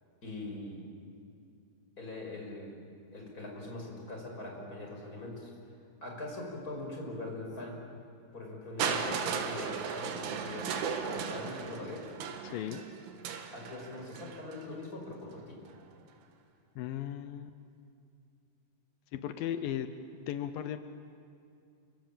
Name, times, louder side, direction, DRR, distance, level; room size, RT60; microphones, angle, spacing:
voice 1, 0.2-0.8 2.0-2.7 3.1-5.5 6.0-7.8 8.3-12.0 13.5-15.6, left 2 dB, 20° left, 0 dB, 5.7 m, -42 dB
Crushing, 8.8-14.7 15.7-15.8, right 6 dB, 90° right, 4.2 m, -36 dB
voice 2, 12.4-12.8 16.8-17.6 19.1-19.9 20.3-20.8, left 10 dB, 85° left, 10 dB, 2.0 m, -36 dB
29.0 x 25.5 x 7.5 m, 2.5 s
omnidirectional pair, 5.3 m